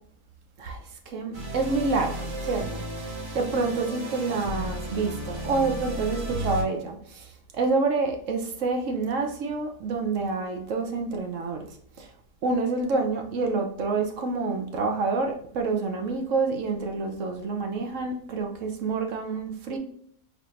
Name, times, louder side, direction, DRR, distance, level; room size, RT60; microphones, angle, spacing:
voice 1, 0.6-11.7 12.0-12.1 12.4-19.8, right 4 dB, 60° right, 4 dB, 1.0 m, -28 dB
sound 1, 1.3-6.6, equal, 45° right, 1.7 m, -34 dB
4.7 x 3.5 x 2.5 m, 0.64 s
omnidirectional pair, 1.6 m